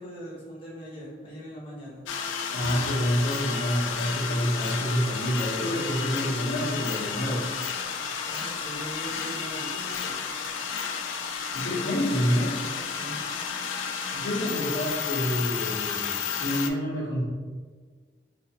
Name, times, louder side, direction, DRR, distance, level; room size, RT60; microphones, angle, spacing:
voice 1, 0.0-2.1 8.1-10.2 11.7-13.2, equal, 30° left, -7 dB, 1.0 m, -41 dB
sound 1, 2.1-16.7, left 6 dB, 90° left, 0.3 m, -32 dB
voice 2, 2.5-7.4 11.5-12.5 14.1-17.2, equal, 70° left, -7 dB, 0.9 m, -28 dB
3.4 x 2.5 x 2.8 m, 1.5 s
head